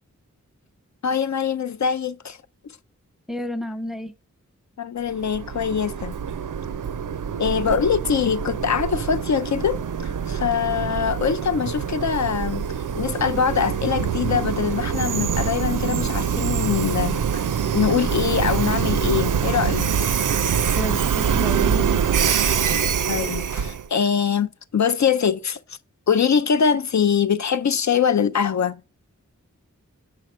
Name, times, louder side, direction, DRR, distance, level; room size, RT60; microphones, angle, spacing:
voice 1, 1.0-2.4 4.8-6.2 7.4-12.6 13.0-17.5 17.7-20.1 23.0-25.8 26.1-28.8, left 7 dB, 65° left, 0.4 m, -23 dB
voice 2, 3.3-4.1 20.7-22.0, equal, ahead, 0.5 m, -30 dB
Train, 5.1-23.9, right 7 dB, 85° right, 0.5 m, -24 dB
5.9 x 4.7 x 4.2 m
wide cardioid pair, 50°, 31 cm